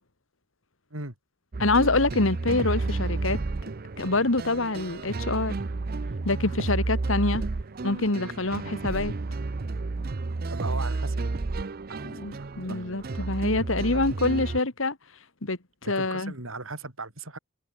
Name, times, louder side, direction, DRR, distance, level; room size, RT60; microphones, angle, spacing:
sound 1, 1.5-14.6, right 3 dB, 45° right, 0.6 m, -31 dB
voice 1, 1.6-3.4 4.0-5.6 6.2-7.4 7.8-9.1 12.0-15.0 15.4-16.3, left 2 dB, 70° left, 2.1 m, -26 dB
voice 2, 10.5-11.2 11.9-12.8 13.2-13.3 13.9-14.0 16.0-17.4, right 3 dB, 80° right, 5.3 m, -38 dB
head